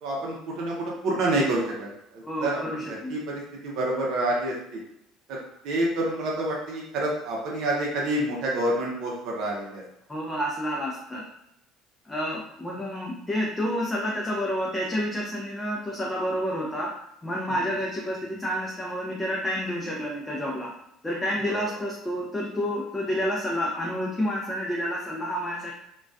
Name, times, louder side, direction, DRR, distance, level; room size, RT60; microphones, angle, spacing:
voice 1, 0.0-4.8 5.3-5.4 5.6-9.8 17.5-17.6 21.5-21.6, right 1 dB, 65° right, -3 dB, 0.6 m, -28 dB
voice 2, 2.2-3.2 10.1-11.2 12.1-16.9 17.2-20.7 21.0-25.7, equal, 10° left, -3 dB, 0.4 m, -29 dB
2.2 x 2.2 x 2.5 m, 0.80 s
supercardioid pair, 100°, 0 cm